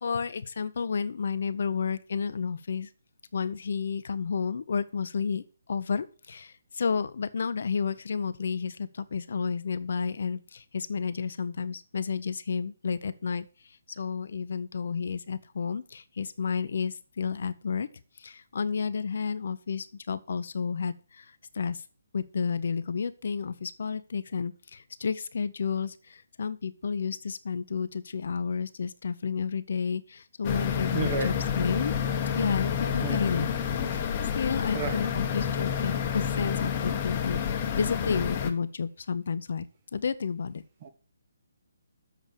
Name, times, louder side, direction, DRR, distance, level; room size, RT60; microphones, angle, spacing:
voice 1, 0.0-2.9 3.3-5.4 5.7-13.4 13.9-17.9 18.2-21.2 21.5-21.8 22.1-31.9 32.4-33.5 33.9-34.1 34.4-39.6 39.9-40.6, left 6 dB, 60° left, 13 dB, 0.6 m, -31 dB
sound 1, 30.4-38.5, left 8 dB, 30° left, 1.0 m, -29 dB
voice 2, 30.9-31.3 33.0-33.3 34.7-35.0 40.8-40.9, right 6 dB, 35° right, 8 dB, 1.2 m, -32 dB
7.5 x 4.9 x 6.8 m, 0.37 s
figure-of-eight pair, 145°, 0 cm